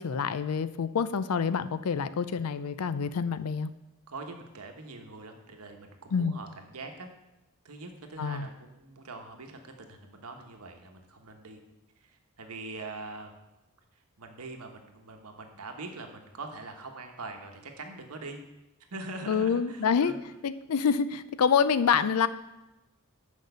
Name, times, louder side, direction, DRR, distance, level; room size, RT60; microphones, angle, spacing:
voice 1, 0.0-3.7 6.1-6.3 8.2-8.5 19.3-20.1 20.4-22.3, left 6 dB, 85° left, 14 dB, 0.5 m, -27 dB
voice 2, 4.1-7.1 7.6-11.6 12.0-13.3 14.2-18.4 18.9-20.2, right 3 dB, 80° right, 4 dB, 1.2 m, -43 dB
6.4 x 5.3 x 6.7 m, 0.97 s
head